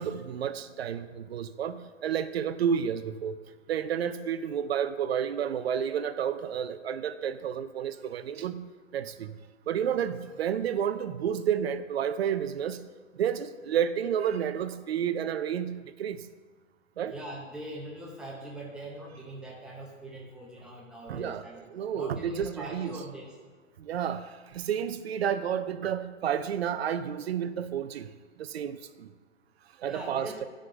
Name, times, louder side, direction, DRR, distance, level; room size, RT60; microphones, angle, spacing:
voice 1, 0.0-3.4 3.7-8.6 8.9-9.3 9.7-12.8 13.2-16.2 17.0-17.1 21.1-21.4 21.7-22.9 23.8-24.2 24.5-28.1 28.4-29.1 29.8-30.5, right 8 dB, 55° right, 12 dB, 0.5 m, -30 dB
voice 2, 17.1-21.6 21.9-23.4 29.8-30.4, right 1 dB, ahead, -4 dB, 0.7 m, -42 dB
8.6 x 5.1 x 5.1 m, 1.4 s
hypercardioid pair, 140°, 39 cm